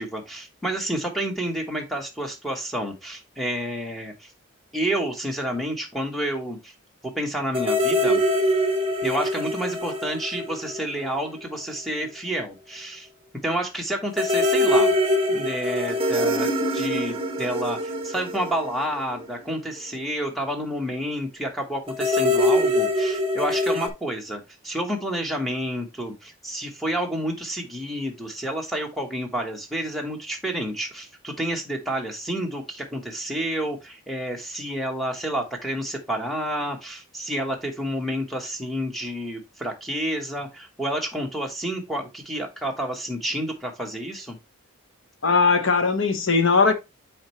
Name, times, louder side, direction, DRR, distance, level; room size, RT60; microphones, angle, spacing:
voice 1, 0.0-4.3 4.7-6.7 7.0-8.2 9.0-13.1 13.4-14.9 15.3-44.4, right 1 dB, ahead, 1.2 m, -29 dB
sound 1, 7.5-11.3 11.6-11.7 14.1-19.5 21.9-23.9, left 1 dB, 25° right, 0.8 m, -24 dB
voice 2, 45.2-46.7, left 4 dB, 65° left, 0.9 m, -19 dB
7.6 x 4.5 x 3.1 m
head